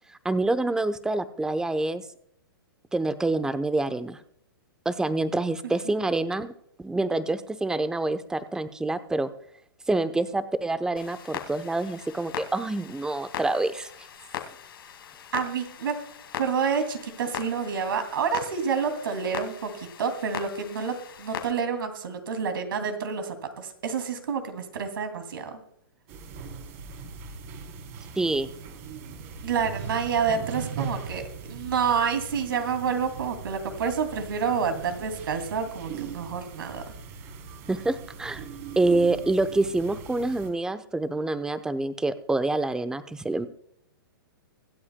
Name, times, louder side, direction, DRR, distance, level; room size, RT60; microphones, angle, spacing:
voice 1, 0.2-2.0 2.9-4.2 4.8-6.5 6.8-9.3 9.9-13.9 28.2-28.5 37.7-38.4 38.8-43.5, right 2 dB, 5° right, 11 dB, 0.8 m, -26 dB
Clock, 11.0-21.5, left 8 dB, 75° left, 2.2 m, -40 dB
voice 2, 15.3-16.0 16.4-25.6 29.4-36.8, right 6 dB, 70° right, 6 dB, 2.7 m, -28 dB
sound 1, 26.1-40.5, right 5 dB, 45° right, 3.7 m, -40 dB
24.5 x 8.6 x 2.3 m, 0.70 s
hypercardioid pair, 125°, 12 cm